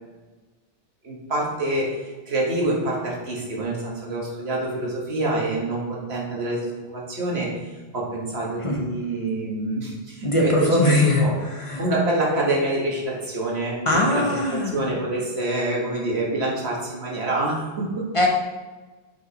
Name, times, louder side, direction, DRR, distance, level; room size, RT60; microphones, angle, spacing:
voice 1, 1.0-2.0 2.3-7.5 7.9-11.3 11.8-18.0, right 2 dB, 80° right, -3 dB, 1.7 m, -26 dB
voice 2, 10.2-11.8 13.9-14.9 18.1-18.3, left 1 dB, 35° left, -1 dB, 0.9 m, -21 dB
7.7 x 5.2 x 3.0 m, 1.2 s
omnidirectional pair, 1.0 m